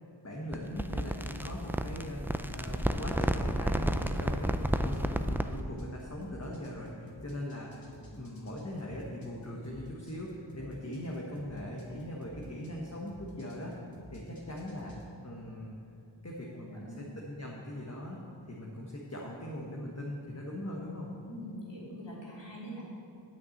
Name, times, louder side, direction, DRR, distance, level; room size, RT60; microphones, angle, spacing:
voice 1, 0.2-7.7 8.1-13.8 14.1-15.0 15.2-15.8 16.2-18.2 18.5-21.1, left 1 dB, 35° left, -3 dB, 1.4 m, -40 dB
sound 1, 0.5-5.6, right 1 dB, 5° right, 0.4 m, -31 dB
sound 2, 4.1-15.1, equal, 50° left, 2.1 m, -52 dB
voice 2, 16.7-17.1 21.3-22.8, equal, 70° left, -6 dB, 3.1 m, -43 dB
9.3 x 5.9 x 8.5 m, 2.5 s
wide cardioid pair, 45°, 45 cm